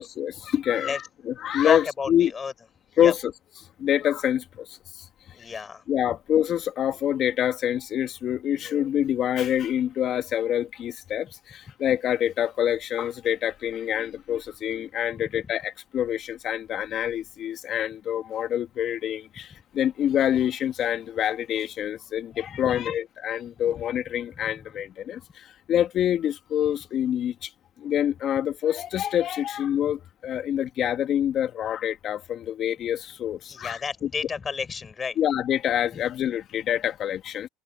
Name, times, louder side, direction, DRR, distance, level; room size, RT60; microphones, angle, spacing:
voice 1, 0.0-2.3 3.0-3.3 3.8-5.1 5.9-27.5 27.8-33.8 35.2-37.5, left 10 dB, 50° left, 2.3 m, -26 dB
voice 2, 1.6-2.5 3.0-3.1 5.3-5.8 15.1-15.2 22.5-22.7 23.7-23.8 24.5-24.6 33.5-35.2 35.9-36.0, left 5 dB, 30° left, 7.7 m, -31 dB
supercardioid pair, 95°, 0 cm